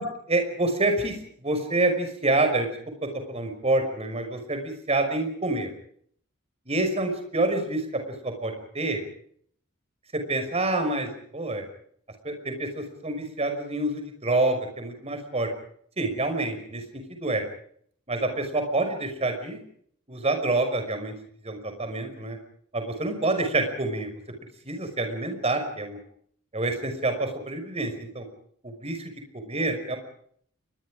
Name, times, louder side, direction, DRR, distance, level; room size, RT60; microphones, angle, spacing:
voice 1, 0.3-2.7 3.0-5.7 6.7-7.8 8.2-9.0 10.1-11.6 12.2-15.5 16.0-16.8 17.2-17.4 18.1-19.6 20.1-21.1 21.4-22.4 22.7-24.1 24.6-26.0 26.5-28.3 28.6-30.0, right 2 dB, 30° right, 6 dB, 5.7 m, -27 dB
29.5 x 24.0 x 5.1 m, 0.63 s
head